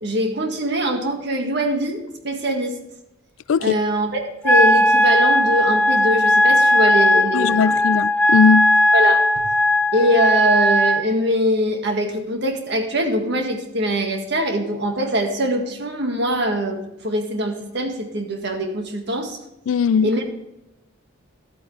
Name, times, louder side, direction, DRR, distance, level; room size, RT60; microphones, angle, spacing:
voice 1, 0.0-2.8 3.6-7.7 8.9-9.4 9.9-19.4 20.0-20.2, equal, 55° right, 1.8 m, -23 dB
Wind instrument woodwind instrument, 4.4-11.0, left 1 dB, 5° left, 0.5 m, -17 dB
voice 2, 7.3-8.7 19.7-20.1, left 6 dB, 80° left, 0.3 m, -18 dB
12.0 x 8.8 x 3.3 m
head